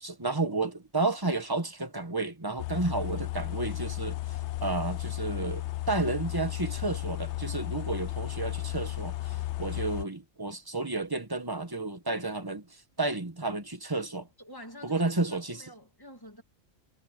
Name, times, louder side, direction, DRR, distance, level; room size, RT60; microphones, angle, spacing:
voice 1, 0.0-4.2 4.6-12.6 13.0-14.3 14.8-15.6, right 3 dB, 15° right, 1.2 m, -31 dB
sound 1, 2.6-10.0, left 15 dB, 65° left, 0.8 m, -34 dB
voice 2, 14.4-16.4, left 1 dB, 15° left, 2.7 m, -48 dB
omnidirectional pair, 1.5 m